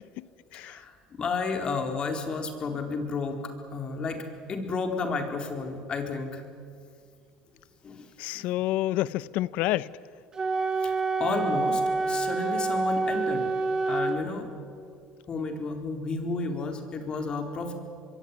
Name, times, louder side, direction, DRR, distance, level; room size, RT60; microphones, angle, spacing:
voice 1, 0.5-0.9 1.2-3.4 3.7-6.4 7.8-8.1 8.3-8.5 10.8-13.5 13.9-14.5 15.3-17.7, left 4 dB, 35° left, 4.2 m, -32 dB
voice 2, 8.2-9.9, left 15 dB, 70° left, 0.7 m, -28 dB
Wind instrument woodwind instrument, 10.3-14.2, right 3 dB, 25° right, 2.5 m, -27 dB
24.0 x 23.0 x 9.8 m
supercardioid pair, 110°, 3 cm